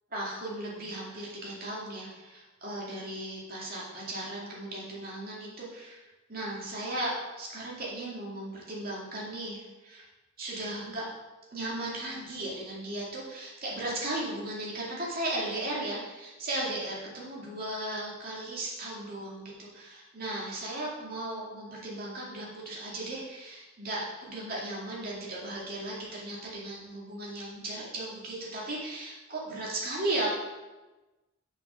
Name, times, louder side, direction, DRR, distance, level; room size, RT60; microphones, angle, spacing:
voice 1, 0.1-6.0 6.3-10.1 10.4-11.1 11.5-30.3, right 1 dB, 45° right, -5 dB, 2.4 m, -36 dB
6.3 x 5.5 x 6.2 m, 1.1 s
head